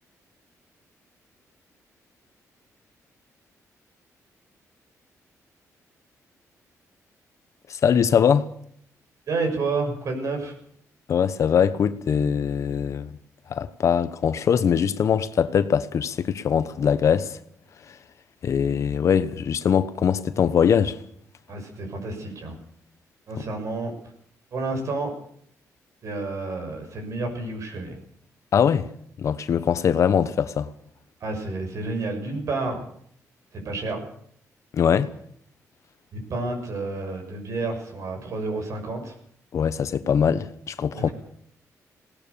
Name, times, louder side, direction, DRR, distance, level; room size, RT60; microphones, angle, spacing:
voice 1, 7.7-8.5 11.1-13.2 13.5-17.4 17.9-18.0 18.4-21.0 28.5-28.9 29.2-30.7 34.7-35.1 39.5-41.1, left 7 dB, 55° left, 1.1 m, -22 dB
voice 2, 9.3-10.5 21.5-22.6 23.3-23.9 24.5-25.1 26.0-28.0 31.2-32.8 33.5-34.0 36.1-39.1 41.0-41.1, right 3 dB, 60° right, 6.8 m, -30 dB
20.0 x 18.5 x 7.0 m
cardioid pair, 125°, 6 cm